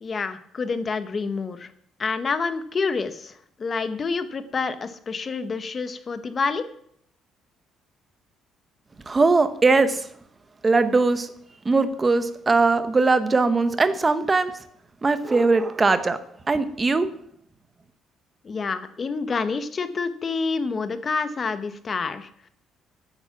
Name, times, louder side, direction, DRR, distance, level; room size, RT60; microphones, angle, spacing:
voice 1, 0.0-1.7 2.0-6.6 18.4-22.3, left 4 dB, 25° left, 11 dB, 0.9 m, -28 dB
voice 2, 9.1-10.1 10.6-11.3 11.6-14.5 15.0-16.2 16.5-17.1, right 3 dB, 15° right, 11 dB, 0.9 m, -20 dB
14.5 x 9.0 x 5.8 m, 0.65 s
cardioid pair, 175°, 0 cm